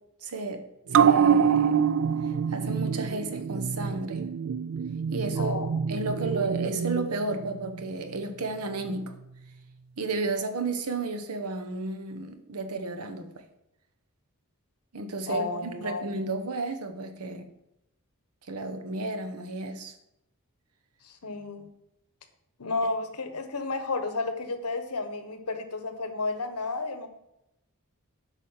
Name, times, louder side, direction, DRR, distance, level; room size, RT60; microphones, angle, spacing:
voice 1, 0.2-0.6 0.9-1.9 2.5-4.3 5.1-5.5 5.9-9.1 10.0-13.4 14.9-17.5 18.5-19.9, right 3 dB, 90° right, 7 dB, 1.0 m, -32 dB
sound 1, 0.9-7.8 8.2-8.3, right 7 dB, 60° right, 0.3 m, -26 dB
voice 2, 5.3-5.8 6.2-6.3 15.3-16.1 21.0-21.7 22.6-27.1, left 3 dB, 90° left, 8 dB, 1.1 m, -32 dB
8.2 x 5.1 x 5.7 m, 0.85 s
head